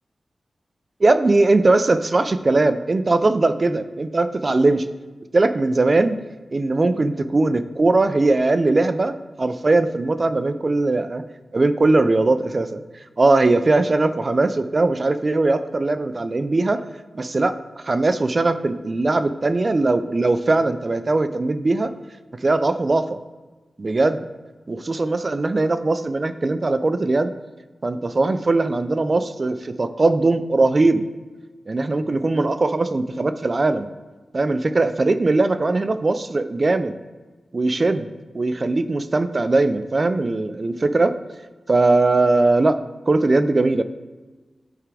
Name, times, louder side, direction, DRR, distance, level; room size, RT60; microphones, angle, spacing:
voice 1, 1.0-4.8 5.3-6.2 6.5-11.2 11.5-12.8 13.2-16.8 17.1-17.6 17.8-21.9 22.4-23.2 23.8-24.2 24.7-27.3 27.8-31.0 31.7-33.9 34.3-36.9 37.5-41.2 41.7-42.8 43.1-43.8, right 2 dB, 40° right, 11 dB, 0.4 m, -20 dB
8.9 x 3.6 x 4.8 m, 1.2 s
wide cardioid pair, 85°, 0 cm